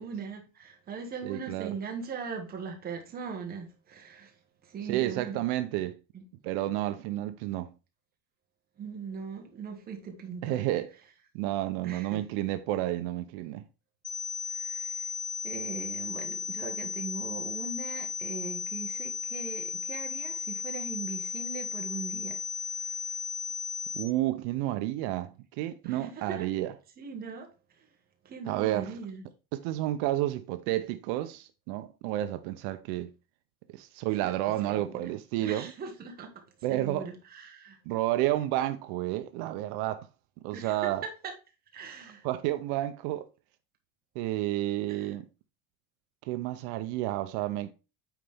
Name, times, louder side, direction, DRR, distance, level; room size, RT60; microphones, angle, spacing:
voice 1, 0.0-4.3 4.6-5.4 6.1-6.2 8.8-10.6 11.8-12.2 14.5-15.1 15.4-22.4 22.7-23.2 25.8-26.5 27.0-27.5 28.2-29.2 34.2-34.3 34.6-35.1 35.4-36.3 36.7-37.8 40.5-41.3 41.7-42.2 44.9-45.1, right 5 dB, 25° right, 1.2 m, -40 dB
voice 2, 1.2-1.7 4.9-6.0 6.4-7.7 10.4-10.9 11.3-13.6 23.9-25.3 25.6-26.7 28.5-28.9 29.5-33.1 33.7-35.7 36.6-37.1 37.9-40.1 40.4-41.0 42.2-43.3 44.2-45.2 46.3-47.7, right 15 dB, 75° right, 0.7 m, -30 dB
sound 1, 14.0-24.0, left 6 dB, 30° left, 1.5 m, -35 dB
9.1 x 4.0 x 3.4 m
cardioid pair, 175°, 40 cm